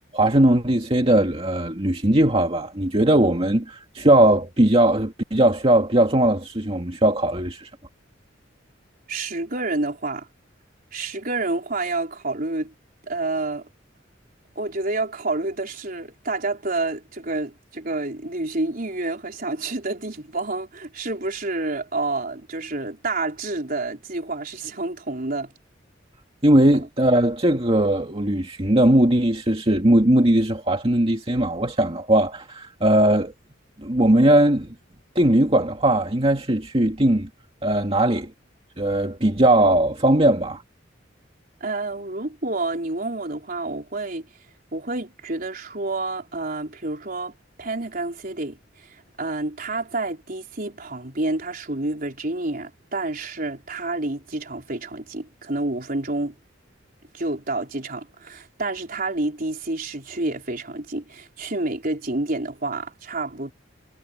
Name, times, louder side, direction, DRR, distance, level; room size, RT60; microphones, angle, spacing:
voice 1, 0.1-7.7 26.4-33.3 33.8-34.7 35.2-37.3 37.6-38.3 38.8-40.6, right 1 dB, 30° right, 2.3 m, -19 dB
voice 2, 9.1-10.3 10.9-12.7 13.0-13.7 14.6-25.5 41.6-44.3 44.7-47.3 47.6-56.4 57.1-63.5, right 2 dB, 50° right, 4.1 m, -29 dB
head